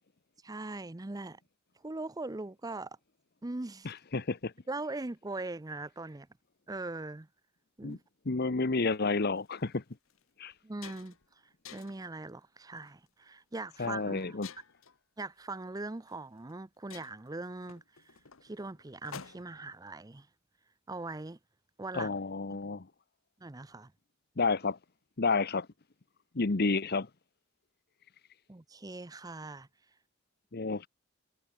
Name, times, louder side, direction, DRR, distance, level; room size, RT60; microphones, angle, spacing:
voice 1, 0.4-1.4 1.8-3.0 3.4-3.9 4.7-6.3 6.7-7.3 7.8-8.0 10.6-11.2 11.7-14.4 15.2-20.3 20.9-21.4 21.8-22.2 22.5-22.6 23.4-23.9 28.5-29.7, right 2 dB, 20° right, 0.6 m, -41 dB
voice 2, 3.8-4.5 7.8-8.0 8.3-9.8 10.4-10.5 13.8-14.5 21.9-22.9 24.4-24.8 25.2-25.7 26.3-27.1 30.5-30.9, left 3 dB, 50° left, 0.9 m, -30 dB
sound 1, 9.4-9.5 10.1-10.2 10.5-11.3 11.6-12.1 12.8-13.1 14.4-15.0 16.1-16.2 16.5-16.6 16.9-19.7, left 6 dB, 90° left, 1.6 m, -50 dB
head